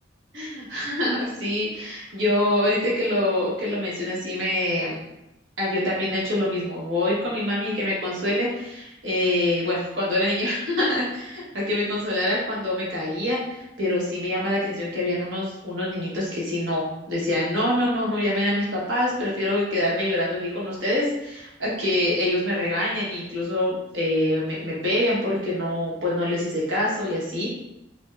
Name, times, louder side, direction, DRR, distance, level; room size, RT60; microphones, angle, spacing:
voice 1, 0.3-5.0 5.6-27.5, left 1 dB, 80° right, -6 dB, 1.3 m, -25 dB
5.0 x 2.2 x 2.4 m, 0.91 s
head